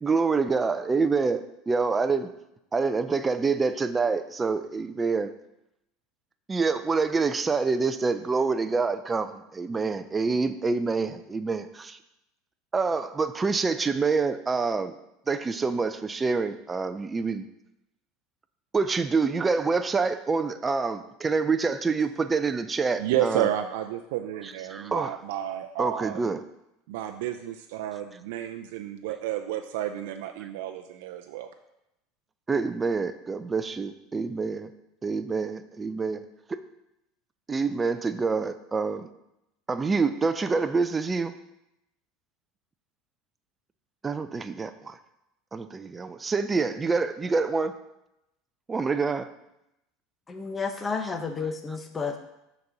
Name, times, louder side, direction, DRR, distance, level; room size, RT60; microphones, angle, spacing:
voice 1, 0.0-2.3 2.7-5.3 6.5-12.0 12.7-14.9 15.3-17.5 18.7-23.5 24.4-25.2 25.8-26.4 30.4-30.5 32.5-34.7 35.0-36.2 36.5-36.6 37.5-39.1 39.7-41.3 44.0-45.0 45.5-47.8 48.7-49.3, right 4 dB, 20° right, 11 dB, 0.5 m, -26 dB
voice 2, 23.0-26.2 26.9-31.5, right 12 dB, 75° right, 6 dB, 0.4 m, -31 dB
voice 3, 50.3-52.2, left 5 dB, 20° left, 5 dB, 0.8 m, -31 dB
6.6 x 4.1 x 5.9 m, 0.87 s
supercardioid pair, 105°, 0 cm